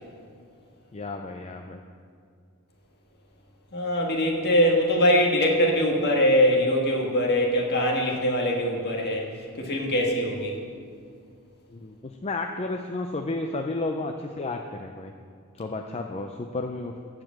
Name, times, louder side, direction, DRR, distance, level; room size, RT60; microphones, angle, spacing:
voice 1, 0.9-1.8 11.7-15.1 15.5-16.9, left 2 dB, 30° left, 4 dB, 0.5 m, -32 dB
voice 2, 3.7-9.3 9.6-10.6, equal, 50° left, 0 dB, 1.8 m, -22 dB
15.0 x 5.1 x 7.5 m, 2.2 s
head